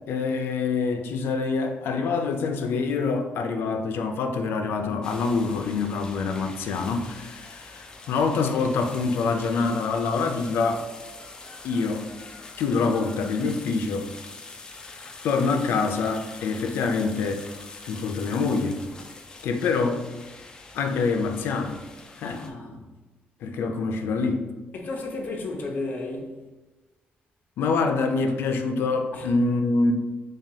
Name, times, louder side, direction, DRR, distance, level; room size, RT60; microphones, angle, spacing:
voice 1, 0.1-10.8 11.6-12.1 12.6-14.1 15.2-17.4 17.9-18.8 19.4-20.1 20.7-21.8 22.2-22.4 23.4-24.5 27.6-29.9, left 4 dB, 90° left, 0.4 m, -25 dB
sound 1, 5.0-22.5, left 3 dB, 20° left, 0.3 m, -44 dB
voice 2, 22.2-22.9 24.7-26.4 29.1-29.3, left 2 dB, 50° left, 0.7 m, -33 dB
6.0 x 2.3 x 2.7 m
cardioid pair, 175°, 4 cm